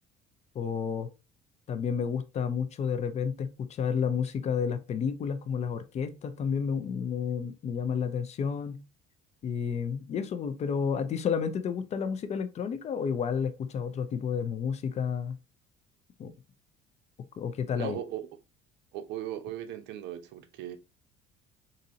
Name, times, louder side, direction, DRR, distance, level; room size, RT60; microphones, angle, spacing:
voice 1, 0.5-1.1 1.7-8.8 9.4-15.4 16.2-16.3 17.4-18.0, left 6 dB, 35° left, 0.5 m, -31 dB
voice 2, 17.8-18.3 18.9-20.8, right 11 dB, 70° right, 0.7 m, -38 dB
3.9 x 2.6 x 2.7 m
cardioid pair, 120°, 19 cm